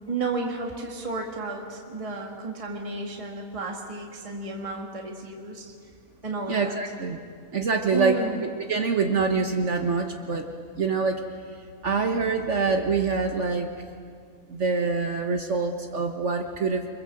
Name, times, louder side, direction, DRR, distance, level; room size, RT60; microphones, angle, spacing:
voice 1, 0.1-5.7 6.2-6.8 7.9-8.4, right 3 dB, 25° right, 1 dB, 2.0 m, -32 dB
voice 2, 6.5-7.2 7.5-10.5 10.8-11.2 11.8-13.7 14.5-16.9, right 4 dB, 55° right, 4 dB, 1.6 m, -25 dB
28.0 x 24.5 x 7.8 m, 2.2 s
omnidirectional pair, 1.5 m